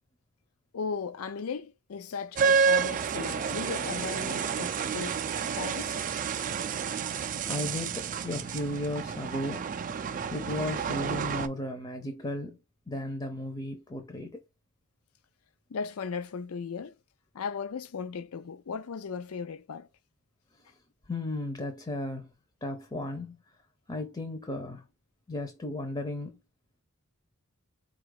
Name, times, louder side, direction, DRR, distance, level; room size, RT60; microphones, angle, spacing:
voice 1, 0.7-5.2 5.6-6.0 15.7-16.9 17.3-19.9, left 5 dB, 85° left, 0.5 m, -37 dB
sound 1, 2.3-11.5, right 6 dB, 35° right, 0.4 m, -30 dB
voice 2, 7.4-9.7 10.3-12.6 12.9-14.4 20.6-20.7 21.1-22.3 22.6-23.4 23.9-24.8 25.3-26.4, left 1 dB, 20° left, 0.6 m, -35 dB
4.1 x 2.4 x 4.7 m
head